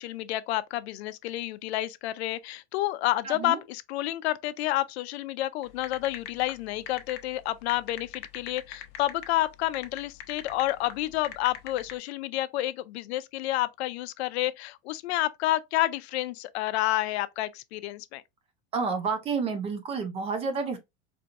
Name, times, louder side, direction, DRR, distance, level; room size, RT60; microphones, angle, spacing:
voice 1, 0.0-18.2, left 15 dB, 85° left, 0.5 m, -29 dB
voice 2, 3.2-3.6 18.7-20.8, right 5 dB, 20° right, 0.4 m, -30 dB
sound 1, 5.6-11.9, left 10 dB, 65° left, 0.9 m, -41 dB
4.4 x 2.6 x 2.4 m
supercardioid pair, 160°, 31 cm